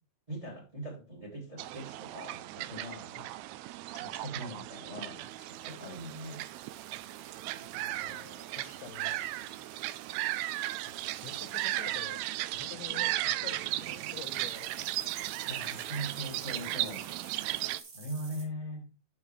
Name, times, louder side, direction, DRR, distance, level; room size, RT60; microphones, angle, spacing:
voice 1, 0.3-3.1 3.9-6.4 15.4-17.1 17.9-18.9, equal, 10° right, 1.8 m, -41 dB
sound 1, 1.6-17.8, right 16 dB, 85° right, 2.5 m, -36 dB
sound 2, 5.3-18.4, right 4 dB, 45° right, 3.0 m, -53 dB
voice 2, 7.6-9.7 10.9-12.3 12.5-15.2, left 12 dB, 85° left, 2.6 m, -49 dB
11.0 x 5.6 x 3.2 m
omnidirectional pair, 4.6 m